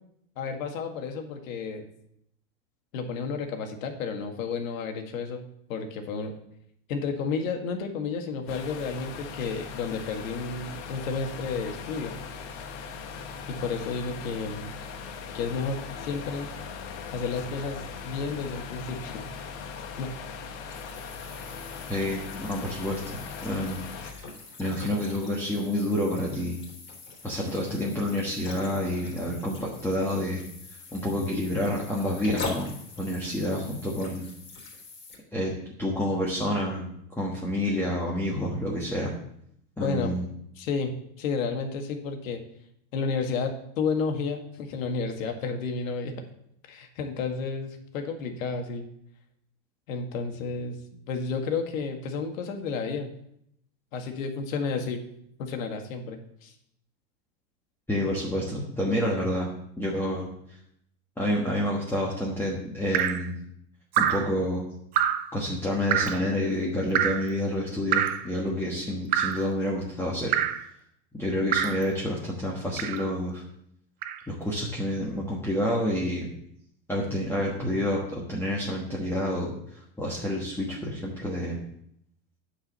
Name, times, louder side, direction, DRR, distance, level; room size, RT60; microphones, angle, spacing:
voice 1, 0.4-1.9 2.9-5.4 5.7-6.3 6.9-12.1 13.5-14.7 15.3-16.5 17.1-19.2 20.0-20.1 39.8-40.1 40.6-42.4 42.9-46.1 46.7-48.9 49.9-50.8 51.1-53.1 53.9-55.0 55.4-56.5, left 4 dB, 80° left, 5 dB, 1.9 m, -31 dB
sound 1, 8.5-24.1, left 6 dB, 60° left, 1.4 m, -39 dB
sound 2, 20.7-35.2, left 3 dB, 30° left, 3.4 m, -42 dB
voice 2, 21.9-23.8 24.6-26.6 27.2-30.4 30.9-34.2 35.3-35.5 35.8-36.9 37.2-39.1 39.8-40.3 57.9-59.5 59.8-60.3 61.2-63.3 64.0-64.6 65.3-70.3 71.2-73.4 74.3-76.3 76.9-79.5 80.0-81.6, left 1 dB, 5° left, -4 dB, 1.4 m, -28 dB
Drip, 62.9-63.3 63.9-64.3 65.0-65.3 65.9-66.2 67.0-67.3 67.9-68.3 69.1-69.5 70.3-70.7 71.5-71.8 72.8-73.1 74.0-74.2, right 10 dB, 25° right, 0.4 m, -26 dB
9.4 x 5.0 x 6.9 m, 0.72 s
supercardioid pair, 145°, 40 cm